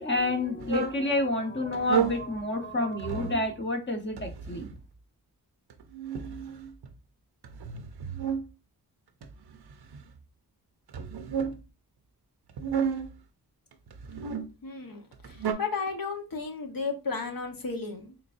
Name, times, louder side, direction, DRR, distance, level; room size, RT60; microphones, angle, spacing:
voice 1, 0.0-4.7, left 2 dB, 30° left, 4 dB, 0.8 m, -29 dB
sound 1, 0.6-1.0 1.7-2.2 3.0-3.5 4.2-4.8 5.7-6.9 7.4-8.5 9.2-10.2 10.9-11.6 12.5-13.1 13.9-14.5 15.1-15.5, right 7 dB, 80° right, 0.6 m, -32 dB
voice 2, 14.6-18.1, left 4 dB, 60° left, 3 dB, 1.0 m, -34 dB
3.9 x 3.3 x 2.5 m, 0.29 s
cardioid pair, 55°, 39 cm